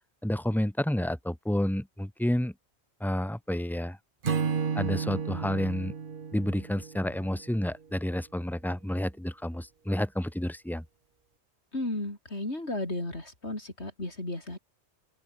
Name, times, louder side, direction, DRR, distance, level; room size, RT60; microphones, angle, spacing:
voice 1, 0.2-2.5 3.0-4.0 4.7-5.9 6.3-10.8, left 1 dB, ahead, 1.1 m, -30 dB
Acoustic guitar / Strum, 4.2-7.6, right 6 dB, 50° right, 1.2 m, -32 dB
voice 2, 11.7-14.6, left 2 dB, 75° left, 6.2 m, -34 dB
open air
omnidirectional pair, 1.1 m